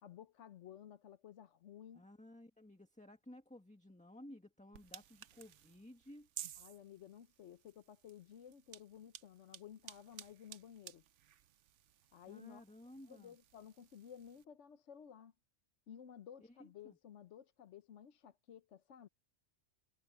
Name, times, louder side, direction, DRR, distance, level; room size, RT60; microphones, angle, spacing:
voice 1, 0.0-2.0 6.6-11.0 12.1-12.6 13.1-15.3 15.9-19.1, left 9 dB, 80° left, 1.2 m, -55 dB
voice 2, 1.9-6.3 12.2-13.4 16.6-17.0, left 1 dB, 5° left, 1.5 m, -56 dB
sound 1, 4.7-14.4, right 10 dB, 85° right, 1.1 m, -55 dB
omnidirectional pair, 1.2 m